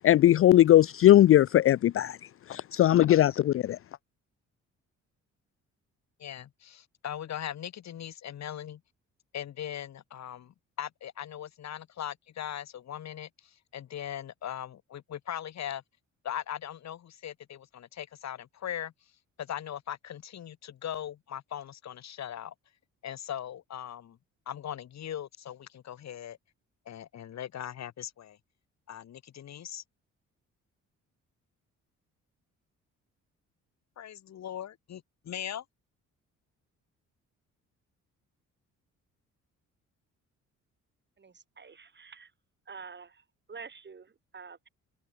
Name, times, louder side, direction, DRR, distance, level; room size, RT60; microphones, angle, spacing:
voice 1, 0.0-2.2 2.5-3.8, left 13 dB, 45° left, 0.4 m, -19 dB
voice 2, 6.2-8.8 9.3-13.3 13.7-15.8 16.2-18.9 19.4-22.5 23.0-24.2 24.5-26.4 26.9-28.4 28.9-29.8 34.0-35.6, left 10 dB, 60° left, 2.2 m, -39 dB
voice 3, 41.2-42.3 42.6-44.7, right 5 dB, 35° right, 6.8 m, -48 dB
cardioid pair, 90°, 30 cm